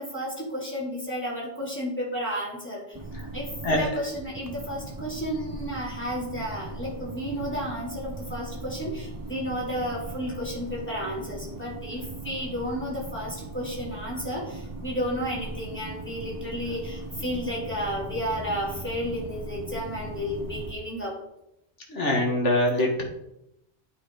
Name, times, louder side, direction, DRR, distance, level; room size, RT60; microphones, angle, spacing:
voice 1, 0.0-3.0 3.3-21.2, equal, 10° left, -5 dB, 3.0 m, -32 dB
sound 1, 2.9-20.7, right 2 dB, 20° right, 1.1 m, -39 dB
voice 2, 21.9-23.0, left 1 dB, 85° left, 0 dB, 2.0 m, -23 dB
9.5 x 5.4 x 5.0 m, 0.83 s
omnidirectional pair, 1.2 m